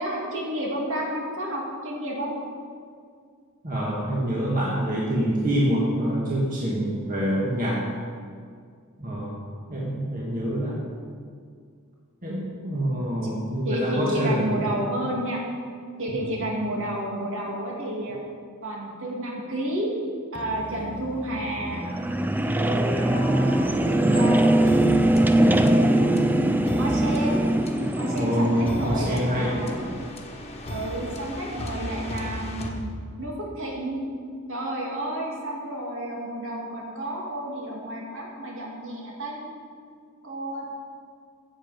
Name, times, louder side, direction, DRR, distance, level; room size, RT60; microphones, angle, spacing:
voice 1, 0.0-2.3 13.2-13.3 13.6-15.4 16.0-18.2 18.6-19.9 20.3-21.8 22.5-24.4 25.6-27.5 28.0-29.7 30.7-32.9 33.2-34.0 34.5-39.5 40.2-40.7, right 1 dB, 65° right, -3 dB, 2.7 m, -31 dB
voice 2, 3.6-7.8 9.0-9.4 9.7-10.8 12.2-14.6 16.2-16.3 28.2-29.6, equal, 40° right, -5 dB, 1.8 m, -26 dB
sound 1, 20.3-30.1, right 1 dB, 10° right, 0.4 m, -22 dB
sound 2, 24.7-33.5, left 1 dB, 30° left, 1.3 m, -37 dB
15.0 x 7.6 x 5.2 m, 2.1 s
head